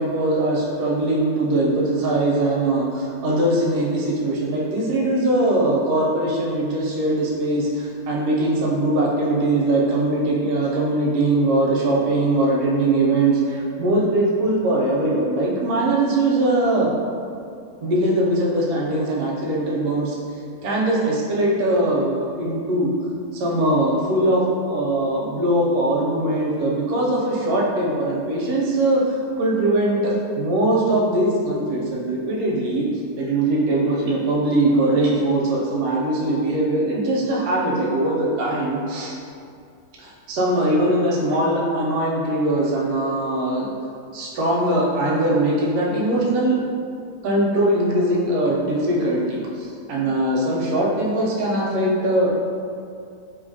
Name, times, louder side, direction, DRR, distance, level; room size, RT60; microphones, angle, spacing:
voice 1, 0.0-16.9 17.8-20.2 20.6-22.9 23.3-32.9 33.2-39.2 40.0-43.7 44.1-46.6 47.2-52.3, right 1 dB, 75° right, -3 dB, 1.0 m, -21 dB
2.8 x 2.5 x 2.6 m, 2.4 s
omnidirectional pair, 1.6 m